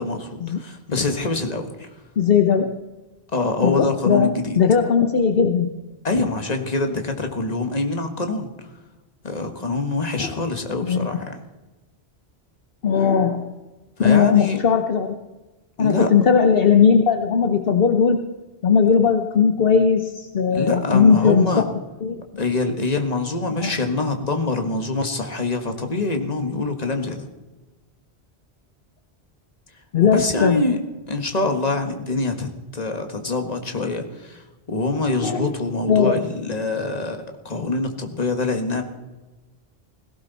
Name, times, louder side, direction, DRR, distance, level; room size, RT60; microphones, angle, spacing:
voice 1, 0.0-1.9 3.3-4.6 6.0-8.5 9.2-11.3 14.0-14.6 15.8-16.1 20.5-21.6 22.4-27.3 30.0-30.8 31.1-38.8, left 3 dB, 40° left, 5 dB, 1.6 m, -25 dB
voice 2, 2.2-2.8 3.6-5.7 10.2-10.4 10.8-11.1 12.8-13.5 14.0-15.1 15.8-18.3 18.6-21.7 22.0-22.2 23.6-23.7 29.9-30.7 35.2-35.5 35.9-36.1, left 6 dB, 65° left, 6 dB, 1.0 m, -18 dB
17.5 x 16.5 x 4.1 m, 1.1 s
omnidirectional pair, 1.1 m